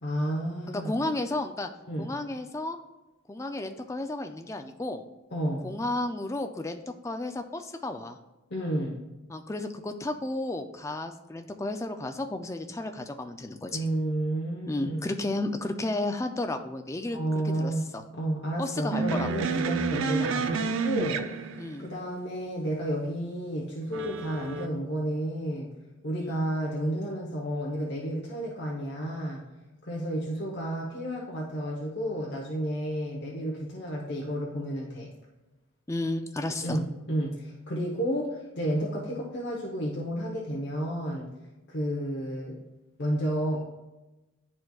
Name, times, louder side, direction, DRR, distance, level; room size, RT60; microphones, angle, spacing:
voice 1, 0.0-1.0 1.9-2.1 5.3-5.7 8.5-9.0 13.7-15.1 17.1-21.4 21.8-25.7 26.0-29.4 29.8-35.1 36.6-41.3 41.7-42.6 43.0-43.6, right 1 dB, 55° left, -3 dB, 0.9 m, -31 dB
voice 2, 0.7-1.7 2.0-2.8 3.3-5.0 5.6-8.2 9.3-13.8 14.7-17.2 17.4-18.0 18.6-19.5 21.6-21.9 26.2-26.4 35.9-36.8, left 2 dB, 15° left, 6 dB, 0.3 m, -33 dB
sound 1, 18.9-21.9 23.9-24.7, right 5 dB, 70° right, 0.4 m, -30 dB
10.5 x 4.3 x 2.3 m, 1.1 s
head